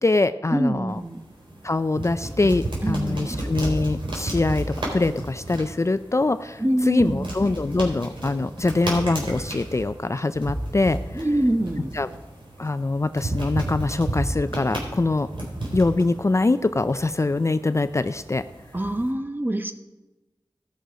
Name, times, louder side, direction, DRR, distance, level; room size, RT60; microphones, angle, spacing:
voice 1, 0.0-1.0 1.6-4.7 4.9-11.3 11.9-12.1 12.6-15.3 15.7-18.4, left 2 dB, 35° left, 11 dB, 0.4 m, -23 dB
voice 2, 0.5-1.2 2.8-3.4 6.6-7.3 11.1-11.9 18.7-19.7, right 1 dB, 20° right, 6 dB, 1.0 m, -24 dB
sound 1, 0.9-19.1, right 1 dB, 70° right, 3.9 m, -33 dB
17.0 x 6.3 x 5.1 m, 1.1 s
wide cardioid pair, 75°, 9 cm